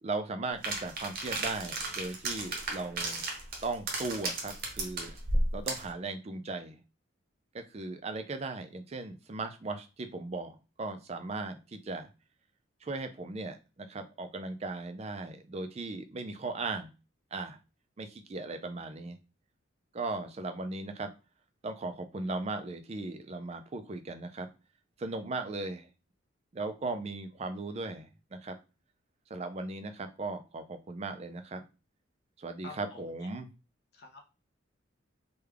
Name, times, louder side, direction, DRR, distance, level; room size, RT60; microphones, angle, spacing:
voice 1, 0.0-3.2 3.6-5.1 5.5-6.8 7.5-12.1 12.8-16.9 17.3-17.6 18.0-19.2 19.9-21.1 21.6-24.5 25.0-25.9 26.5-28.6 29.3-31.6 32.4-33.5, right 3 dB, 30° right, 7 dB, 0.4 m, -37 dB
sound 1, 0.6-5.9, right 2 dB, 45° right, 0.8 m, -33 dB
voice 2, 32.6-33.1 33.9-34.2, left 3 dB, 55° left, 2 dB, 0.7 m, -47 dB
3.3 x 2.2 x 3.4 m, 0.31 s
head